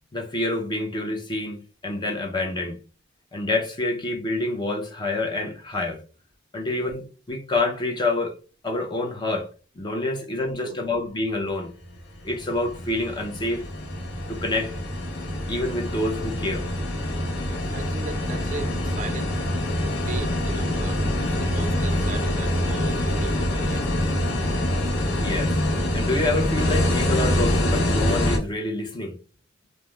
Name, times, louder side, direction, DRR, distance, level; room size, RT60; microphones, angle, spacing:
voice 1, 0.1-2.8 3.3-6.0 6.5-8.4 8.6-9.5 9.8-11.7 12.2-13.6 14.3-14.7 15.5-16.7 25.2-25.6 25.9-29.2, left 2 dB, 25° left, 0.5 m, -27 dB
voice 2, 10.1-11.0 17.5-19.3 20.1-23.9, right 4 dB, 40° right, 0.4 m, -38 dB
sound 1, 11.7-28.4, left 1 dB, 55° left, 0.7 m, -25 dB
2.3 x 2.0 x 3.1 m
head